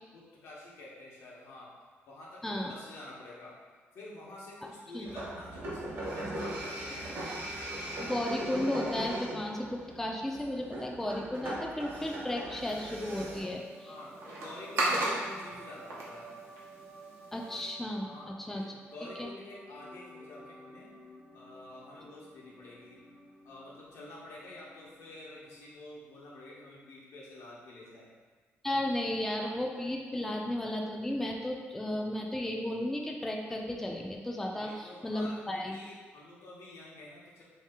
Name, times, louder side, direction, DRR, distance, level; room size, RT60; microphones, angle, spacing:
voice 1, 0.1-1.8 2.1-3.5 3.9-7.2 13.9-16.5 18.0-20.9 21.3-23.1 23.4-28.1 34.6-37.4, left 2 dB, 80° left, -5 dB, 0.9 m, -49 dB
sound 1, 5.1-13.4, right 1 dB, 60° right, 1.1 m, -39 dB
voice 2, 8.0-13.9 17.3-18.6 19.2-19.3 28.6-35.8, left 1 dB, 5° left, 0 dB, 0.3 m, -34 dB
sound 2, 12.5-17.6, right 1 dB, 85° right, 0.8 m, -36 dB
sound 3, 12.7-25.7, right 2 dB, 40° right, 0.7 m, -53 dB
2.8 x 2.8 x 3.5 m, 1.4 s
cardioid pair, 110°, 5 cm